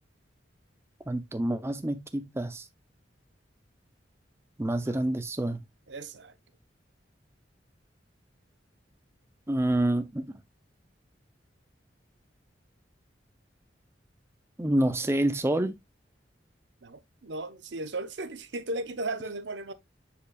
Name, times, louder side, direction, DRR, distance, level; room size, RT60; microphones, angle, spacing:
voice 1, 1.1-2.7 4.6-5.6 9.5-10.3 14.6-15.8, right 1 dB, 15° right, 0.5 m, -27 dB
voice 2, 5.9-6.3 16.8-19.7, right 2 dB, 70° right, 0.9 m, -36 dB
7.2 x 6.9 x 2.3 m
head